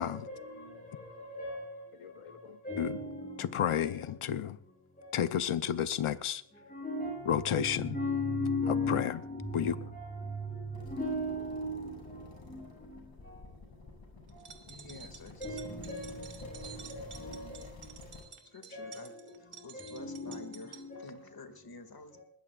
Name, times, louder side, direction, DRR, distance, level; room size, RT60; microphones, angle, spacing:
voice 1, 0.0-4.0 5.0-5.2 5.6-5.7 6.5-13.4 14.3-14.5 15.4-18.1 18.7-21.1 22.1-22.2, left 1 dB, 15° left, 7.0 m, -38 dB
voice 2, 2.0-2.9 3.4-4.6 5.1-6.4 7.3-7.9 8.9-9.1 9.5-9.7, left 9 dB, 85° left, 0.9 m, -31 dB
sound 1, 10.7-18.2, left 3 dB, 60° left, 7.0 m, -51 dB
sound 2, 14.3-20.8, right 7 dB, 75° right, 2.4 m, -51 dB
voice 3, 14.7-15.9 16.4-17.5 18.5-22.2, left 3 dB, 45° left, 2.3 m, -51 dB
21.5 x 20.5 x 2.5 m
wide cardioid pair, 120°, 50 cm